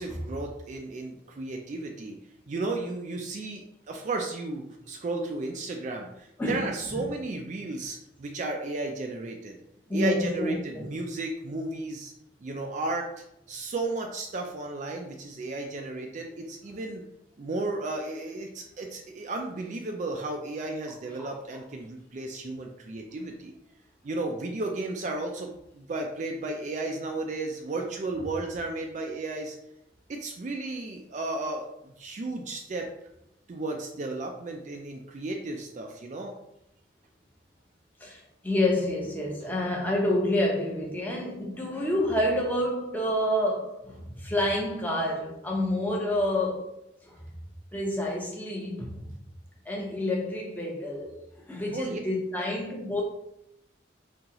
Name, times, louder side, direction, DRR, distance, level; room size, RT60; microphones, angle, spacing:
voice 1, 0.0-2.2 2.5-9.6 9.9-12.1 12.4-13.1 13.5-17.0 17.4-23.5 24.0-29.6 30.1-32.9 33.5-36.3 51.7-52.0, right 2 dB, 40° right, 2 dB, 0.3 m, -34 dB
voice 2, 6.4-7.1 9.9-10.9 21.2-21.3 38.0-47.2 47.7-49.0 49.7-53.0, left 1 dB, 10° left, -2 dB, 0.6 m, -28 dB
3.8 x 2.8 x 2.8 m, 0.80 s
head